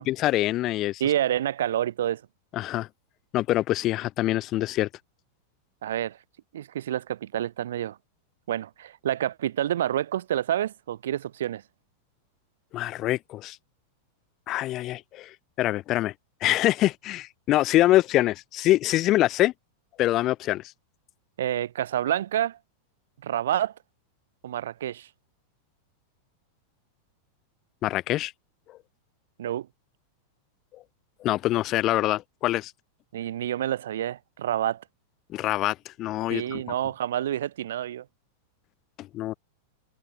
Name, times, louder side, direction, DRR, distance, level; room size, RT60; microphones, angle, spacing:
voice 1, 0.1-1.0 2.5-2.9 3.3-4.9 12.7-13.6 14.5-15.3 15.6-16.1 16.4-19.5 20.0-20.6 27.8-28.3 31.2-32.7 35.3-36.6 39.0-39.3, left 15 dB, 25° left, 2.8 m, -24 dB
voice 2, 1.0-2.2 5.8-6.2 6.5-8.0 8.5-11.6 21.4-22.6 23.2-23.7 24.4-25.1 29.4-29.7 33.1-34.8 36.3-38.1, right 11 dB, 90° right, 2.0 m, -28 dB
supercardioid pair, 175°, 0 cm